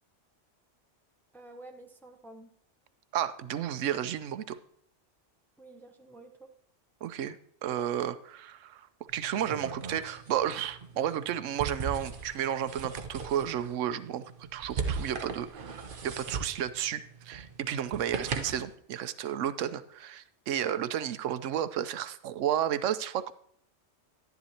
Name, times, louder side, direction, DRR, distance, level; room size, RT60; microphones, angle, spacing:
voice 1, 1.3-2.5 5.6-6.5, right 2 dB, ahead, 3 dB, 0.7 m, -50 dB
voice 2, 3.1-4.6 7.0-7.4 7.6-8.9 9.1-14.2 14.5-23.3, right 10 dB, 85° right, 13 dB, 1.0 m, -32 dB
sound 1, 9.1-18.7, right 5 dB, 50° right, 0.9 m, -39 dB
11.0 x 10.5 x 2.9 m, 0.64 s
omnidirectional pair, 1.3 m